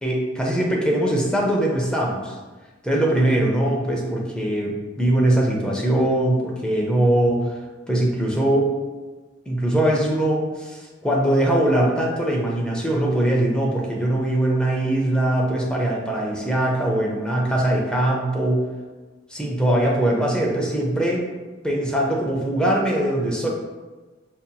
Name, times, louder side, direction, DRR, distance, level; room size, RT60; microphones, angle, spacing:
voice 1, 0.0-2.3 2.8-7.5 7.9-8.7 9.5-18.6 19.3-21.3 21.6-23.5, right 1 dB, 5° left, -2 dB, 0.5 m, -21 dB
5.2 x 2.8 x 2.2 m, 1.3 s
head